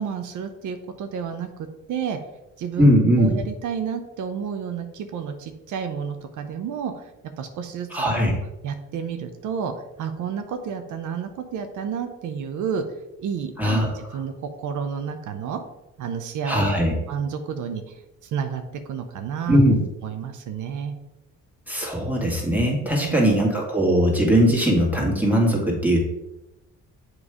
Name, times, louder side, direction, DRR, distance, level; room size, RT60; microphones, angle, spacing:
voice 1, 0.0-1.5 1.9-2.2 2.6-7.1 7.4-8.3 8.6-9.7 10.0-12.8 13.2-14.3 14.6-15.6 16.0-18.6 18.9-19.6 20.0-20.9 23.0-23.2, right 7 dB, 75° right, 7 dB, 0.7 m, -30 dB
voice 2, 2.8-3.3 7.9-8.4 13.6-13.9 16.5-16.9 19.5-19.8 21.7-26.0, equal, 5° right, -1 dB, 2.0 m, -20 dB
7.4 x 3.2 x 4.9 m, 0.95 s
cardioid pair, 90°, 30 cm